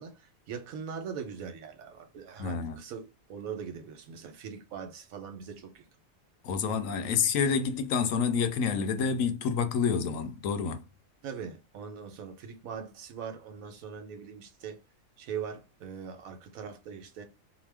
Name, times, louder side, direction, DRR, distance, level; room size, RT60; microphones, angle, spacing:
voice 1, 0.0-5.8 7.0-7.2 11.2-14.8 15.2-17.2, right 7 dB, 90° right, 1.1 m, -41 dB
voice 2, 2.4-2.8 6.4-10.8, left 6 dB, 75° left, 1.0 m, -28 dB
2.8 x 2.0 x 3.3 m
omnidirectional pair, 1.4 m